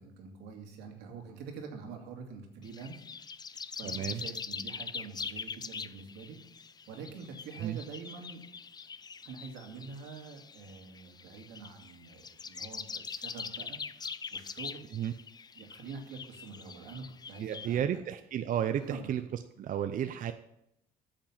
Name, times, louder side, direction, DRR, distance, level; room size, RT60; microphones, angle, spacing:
voice 1, 0.0-3.2 3.7-6.4 6.9-8.4 9.2-14.9 15.6-17.8 18.8-19.1, right 5 dB, 90° right, 2 dB, 2.5 m, -46 dB
sound 1, 2.6-17.8, left 5 dB, 25° left, 0.5 m, -43 dB
voice 2, 3.8-4.2 7.6-7.8 14.9-15.1 17.4-19.2 19.6-20.3, right 10 dB, 55° right, 9 dB, 0.6 m, -32 dB
9.1 x 7.5 x 7.4 m, 0.81 s
cardioid pair, 110°, 17 cm